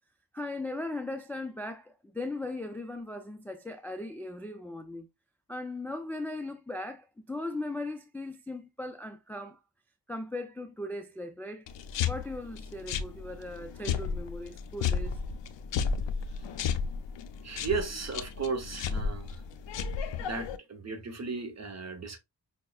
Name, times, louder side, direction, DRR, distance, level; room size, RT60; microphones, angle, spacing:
voice 1, 0.3-5.1 5.5-9.6 10.1-11.6 12.0-15.2, left 2 dB, 5° left, 0.3 m, -38 dB
sound 1, 11.7-20.6, left 6 dB, 90° left, 0.5 m, -33 dB
voice 2, 17.4-19.4 20.2-22.2, right 5 dB, 40° right, 0.9 m, -35 dB
5.4 x 2.1 x 2.3 m
cardioid pair, 90°, 42 cm